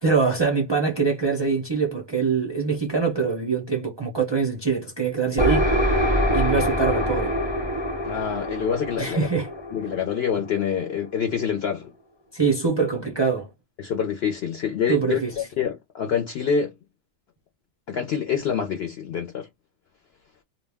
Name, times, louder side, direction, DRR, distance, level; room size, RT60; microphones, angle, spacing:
voice 1, 0.0-5.7 6.3-7.4 9.0-9.5 12.3-13.5 14.9-15.5, right 5 dB, 40° right, 0.4 m, -24 dB
sound 1, 5.4-11.0, equal, 25° left, 0.8 m, -25 dB
voice 2, 8.0-9.3 9.7-11.9 13.8-16.7 17.9-19.5, left 7 dB, 60° left, 0.7 m, -26 dB
2.3 x 2.1 x 3.3 m
omnidirectional pair, 1.3 m